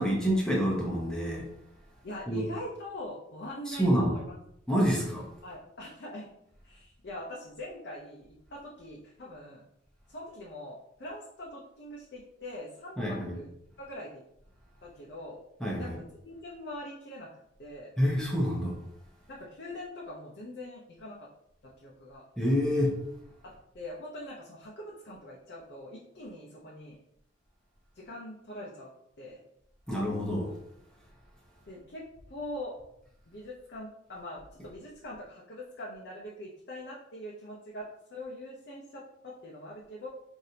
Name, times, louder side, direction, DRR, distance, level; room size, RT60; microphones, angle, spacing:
voice 1, 0.0-1.5 2.3-2.5 3.7-4.2 4.7-5.3 13.0-13.4 15.6-15.9 18.0-18.8 22.4-23.0 29.9-30.5, equal, 5° left, -4 dB, 0.8 m, -27 dB
voice 2, 2.0-4.3 5.4-6.3 6.6-9.6 10.1-13.5 13.8-14.2 14.8-15.4 15.8-15.9 16.2-17.3 17.6-17.9 19.3-21.3 21.6-22.2 23.4-27.0 27.9-28.9 29.2-29.4 31.7-32.7 33.3-40.1, left 1 dB, 50° left, -4 dB, 0.6 m, -43 dB
4.9 x 2.7 x 2.8 m, 0.78 s
head